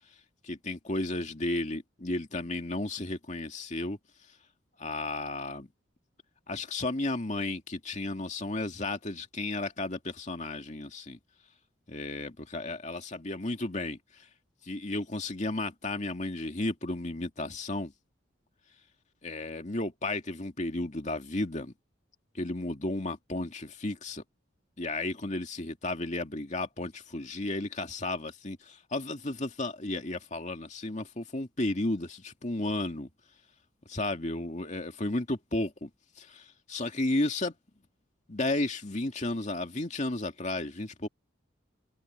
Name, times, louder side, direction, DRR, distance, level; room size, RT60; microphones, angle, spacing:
voice 1, 0.4-4.0 4.8-5.7 6.5-11.2 11.9-14.0 14.7-17.9 19.2-21.7 22.3-24.2 24.8-33.1 33.9-35.9 36.2-37.5 38.3-41.1, left 2 dB, 35° left, 2.3 m, -33 dB
head